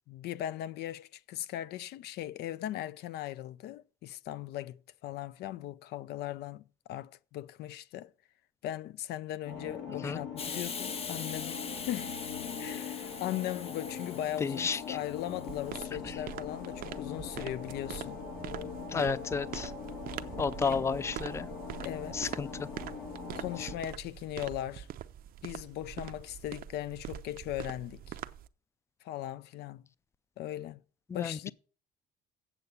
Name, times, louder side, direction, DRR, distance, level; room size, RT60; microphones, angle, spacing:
voice 1, 0.1-8.1 8.6-12.2 12.6-18.2 18.9-19.2 20.7-20.9 21.8-22.3 23.3-24.9 25.4-28.2 29.0-29.8 30.4-30.8 31.1-31.5, left 13 dB, 75° left, 0.5 m, -39 dB
sound 1, 9.5-23.7, left 6 dB, 90° left, 2.8 m, -41 dB
Hiss, 10.4-15.7, left 6 dB, 35° left, 0.7 m, -42 dB
voice 2, 14.4-15.0 16.0-16.2 18.9-19.7 20.4-21.5 22.1-22.7 23.6-23.7 31.1-31.5, left 5 dB, 15° left, 0.4 m, -32 dB
sound 2, 15.5-28.5, right 11 dB, 60° right, 0.6 m, -44 dB
8.2 x 6.8 x 7.0 m
cardioid pair, 110°, 17 cm